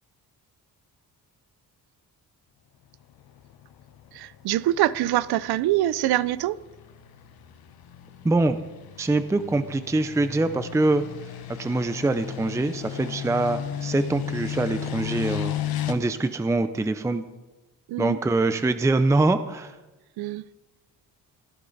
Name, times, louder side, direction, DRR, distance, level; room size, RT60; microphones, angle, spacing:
sound 1, 3.0-15.9, left 10 dB, 75° left, 1.1 m, -35 dB
voice 1, 4.1-6.6 17.9-18.2 20.2-20.4, right 14 dB, 85° right, 0.6 m, -24 dB
voice 2, 8.2-8.6 9.0-11.0 11.6-15.5 15.9-17.2 18.0-19.8, right 2 dB, 10° right, 0.5 m, -24 dB
17.5 x 11.5 x 4.0 m
cardioid pair, 130°, 37 cm